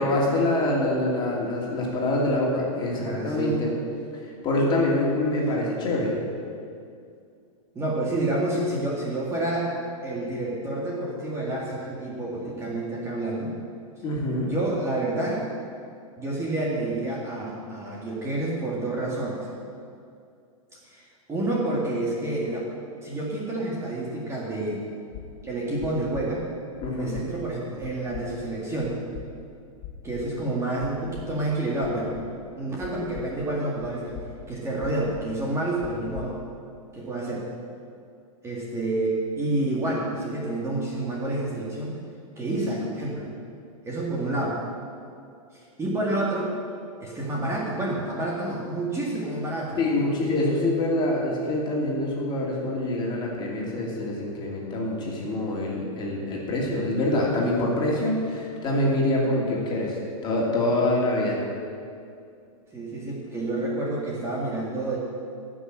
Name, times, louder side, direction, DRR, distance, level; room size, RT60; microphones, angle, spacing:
voice 1, 0.0-3.8 4.2-6.1 14.0-14.5 26.8-27.1 49.8-61.4, left 1 dB, 25° left, -3 dB, 2.8 m, -25 dB
voice 2, 2.9-3.6 7.7-9.7 10.0-13.5 14.4-15.4 16.2-19.5 20.9-22.6 23.0-24.8 25.4-26.4 26.9-29.0 30.0-32.2 32.6-34.2 34.5-36.4 36.9-37.5 38.4-42.0 42.4-43.3 43.8-44.6 45.5-46.5 47.0-49.8 62.7-65.0, right 2 dB, 15° right, -4 dB, 1.9 m, -29 dB
sound 1, 25.1-25.2 25.8-26.2 26.8-27.2 27.8-28.2 28.8-29.2 29.8-30.2 30.8-31.2 31.8-32.2 32.8-33.2 33.8-34.2 34.8-35.2 35.8-36.2, left 12 dB, 45° left, 2.1 m, -40 dB
15.0 x 6.2 x 7.5 m, 2.4 s
hypercardioid pair, 140°, 19 cm